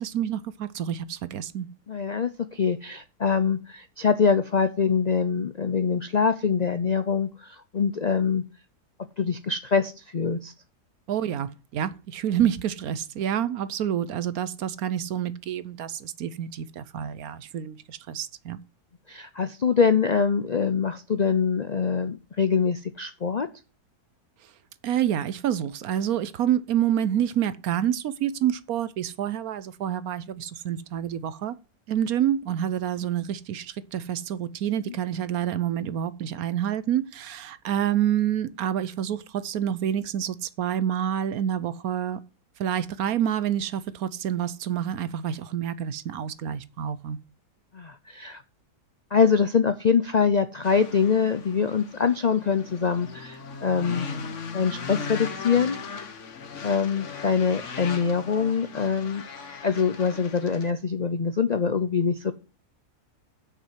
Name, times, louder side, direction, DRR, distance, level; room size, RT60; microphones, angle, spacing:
voice 1, 0.0-1.7 11.1-18.6 24.8-31.5 31.9-42.2 42.6-47.2, right 10 dB, 70° right, 1.1 m, -28 dB
voice 2, 1.9-8.4 9.2-10.5 19.1-23.5 47.7-48.4 49.1-54.1 54.5-56.1 56.6-59.2 59.6-62.3, left 6 dB, 70° left, 0.4 m, -24 dB
sound 1, 50.6-60.7, left 5 dB, 50° left, 1.4 m, -38 dB
8.3 x 6.3 x 7.4 m
omnidirectional pair, 1.7 m